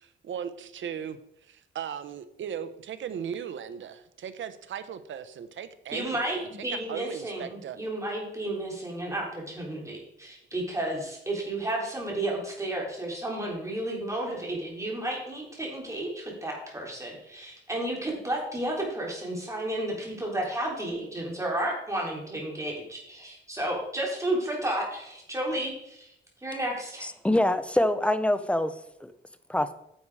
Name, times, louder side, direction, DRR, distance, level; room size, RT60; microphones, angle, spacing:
voice 1, 0.0-7.8, right 8 dB, 75° right, 12 dB, 0.9 m, -38 dB
voice 2, 5.9-26.1 26.4-27.1, right 1 dB, 15° right, -1 dB, 3.8 m, -32 dB
voice 3, 27.0-28.7 29.0-29.1 29.5-29.7, left 1 dB, 5° left, 12 dB, 0.7 m, -25 dB
10.0 x 7.1 x 4.8 m, 0.77 s
cardioid pair, 100°, 20 cm